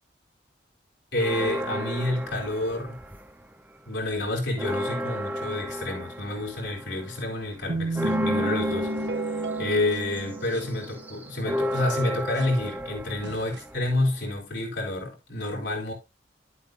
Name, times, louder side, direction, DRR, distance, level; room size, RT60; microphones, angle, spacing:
voice 1, 1.1-2.9 3.9-8.9 9.6-15.9, left 1 dB, 80° left, 4.3 m, -29 dB
sound 1, 1.2-3.5 3.9-14.4, equal, 10° right, 0.8 m, -34 dB
sound 2, 7.7-11.3 11.7-11.8 12.4-12.5 13.2-13.6, right 2 dB, 75° right, 1.2 m, -31 dB
11.0 x 8.2 x 2.6 m
head